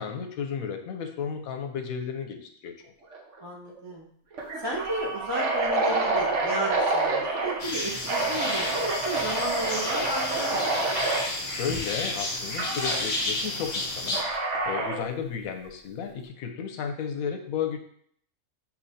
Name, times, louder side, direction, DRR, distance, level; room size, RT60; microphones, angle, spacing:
voice 1, 0.0-2.9 11.2-17.8, left 7 dB, 85° left, 5 dB, 1.1 m, -34 dB
sound 1, 3.1-3.4 3.7-3.8 4.3-7.6 8.1-11.3 12.6-13.0 14.1-15.1, right 3 dB, 65° right, 1.1 m, -28 dB
voice 2, 3.4-4.1 4.6-10.7, right 1 dB, 30° right, -4 dB, 0.4 m, -33 dB
sound 2, 7.6-14.2, left 2 dB, 35° left, 0.9 m, -31 dB
7.0 x 2.7 x 2.7 m, 0.63 s
omnidirectional pair, 1.4 m